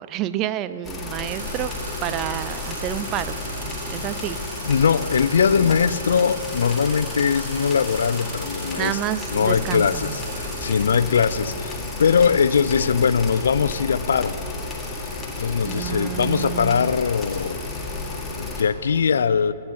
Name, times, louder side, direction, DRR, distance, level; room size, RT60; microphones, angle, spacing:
voice 1, 0.0-1.7 2.0-3.4 3.9-4.4 8.8-10.2 15.6-16.9, right 12 dB, 30° right, 14 dB, 0.4 m, -29 dB
sound 1, 0.8-18.6, left 2 dB, 15° left, 1.7 m, -32 dB
sound 2, 1.2-12.7, right 3 dB, 60° right, 3.0 m, -39 dB
voice 2, 4.7-9.0 9.3-14.4 15.0-17.6 18.0-19.5, left 6 dB, 70° left, 17 dB, 0.4 m, -21 dB
12.5 x 8.9 x 7.0 m, 2.9 s
figure-of-eight pair, 125°, 0 cm